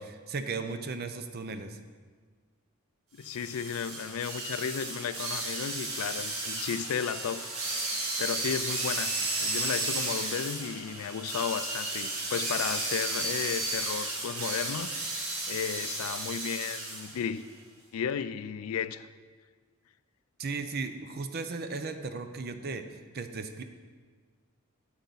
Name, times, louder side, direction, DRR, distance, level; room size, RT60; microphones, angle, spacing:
voice 1, 0.0-1.8 20.4-23.6, right 4 dB, 45° right, 8 dB, 0.5 m, -36 dB
voice 2, 3.1-7.9 8.2-17.4 17.9-19.1, left 7 dB, 75° left, 14 dB, 0.4 m, -34 dB
sound 1, 3.2-17.2, right 2 dB, 75° right, 1.7 m, -33 dB
8.3 x 8.0 x 4.0 m, 1.5 s
head